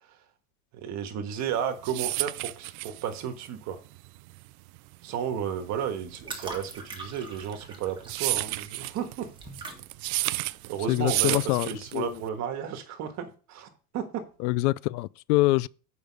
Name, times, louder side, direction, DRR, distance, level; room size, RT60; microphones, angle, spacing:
voice 1, 0.7-3.8 5.0-9.3 10.1-14.2, right 8 dB, 40° right, 1.4 m, -33 dB
sound 1, 1.5-12.3, right 21 dB, 70° right, 0.5 m, -32 dB
sound 2, 5.6-12.4, right 3 dB, 10° right, 1.6 m, -44 dB
voice 2, 10.9-12.2 14.4-15.7, left 19 dB, 80° left, 0.5 m, -25 dB
8.0 x 5.2 x 5.2 m
supercardioid pair, 150°, 45 cm